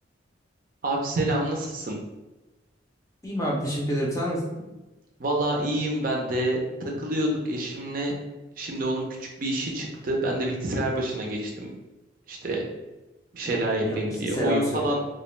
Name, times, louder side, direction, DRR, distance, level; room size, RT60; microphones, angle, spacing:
voice 1, 0.8-2.0 5.2-8.1 8.6-11.7 12.3-12.6 13.3-15.0, right 1 dB, 45° right, 0 dB, 0.4 m, -27 dB
voice 2, 3.2-4.6 13.8-14.9, equal, 15° left, -4 dB, 0.5 m, -28 dB
2.3 x 2.1 x 3.0 m, 1.1 s
head